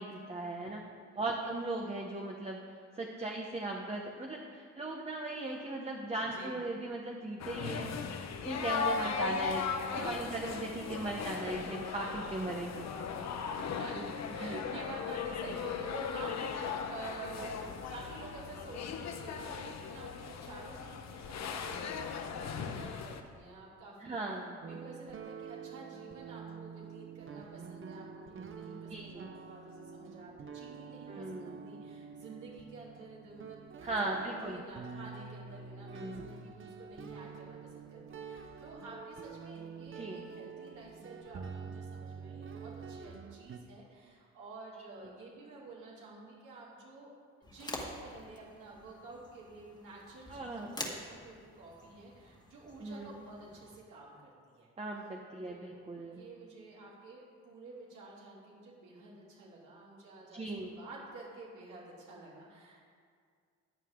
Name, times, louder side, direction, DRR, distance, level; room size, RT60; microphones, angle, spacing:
voice 1, 0.0-0.8 1.2-2.6 2.9-7.9 8.4-9.6 10.0-12.9 14.0-14.1 14.4-14.8 17.4-17.5 24.0-24.6 28.9-29.3 31.1-31.6 33.8-34.6 35.9-36.2 39.9-40.2 50.3-50.7 52.8-53.2 54.8-56.2 60.3-60.7, right 2 dB, 20° right, -1 dB, 1.2 m, -38 dB
voice 2, 0.7-1.2 6.3-6.6 9.6-10.5 11.1-11.2 13.8-14.0 14.3-47.1 47.4-54.7 55.5-62.9, right 3 dB, 80° right, -6 dB, 3.5 m, -50 dB
sound 1, 7.4-23.2, left 6 dB, 60° left, 1.0 m, -38 dB
sound 2, 24.6-43.6, right 6 dB, 45° right, 0.9 m, -47 dB
sound 3, 47.4-53.8, left 1 dB, 15° left, 1.9 m, -47 dB
14.5 x 9.2 x 3.9 m, 2.1 s
cardioid pair, 90°, 30 cm